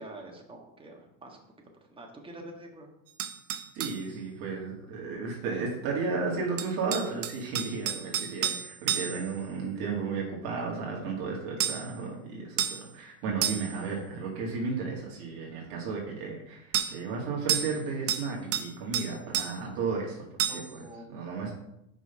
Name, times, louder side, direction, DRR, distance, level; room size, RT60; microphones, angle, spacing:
voice 1, 0.0-1.4 1.9-2.9 20.5-21.1, right 1 dB, 10° right, 1 dB, 1.5 m, -46 dB
sound 1, 3.2-4.0 6.6-9.3 11.6-11.9 12.6-12.9 13.4-13.8 16.7-16.9 17.5-17.8 18.1-18.7 18.9-19.5 20.4-20.7, right 10 dB, 30° right, 0.6 m, -30 dB
voice 2, 3.7-20.8 21.1-21.5, right 4 dB, 50° right, -2 dB, 2.0 m, -34 dB
6.1 x 5.4 x 5.7 m, 0.83 s
supercardioid pair, 130°, 47 cm